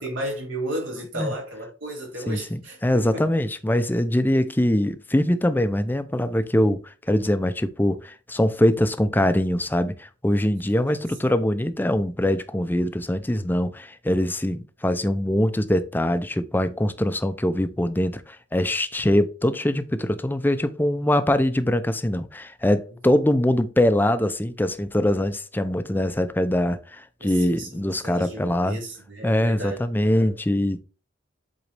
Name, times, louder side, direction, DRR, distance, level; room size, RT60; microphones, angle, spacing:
voice 1, 0.0-3.3 10.9-11.0 27.2-30.3, right 1 dB, 85° right, 3.0 m, -34 dB
voice 2, 2.3-28.8 29.2-30.8, left 1 dB, 10° left, 0.5 m, -23 dB
7.9 x 4.0 x 3.3 m
head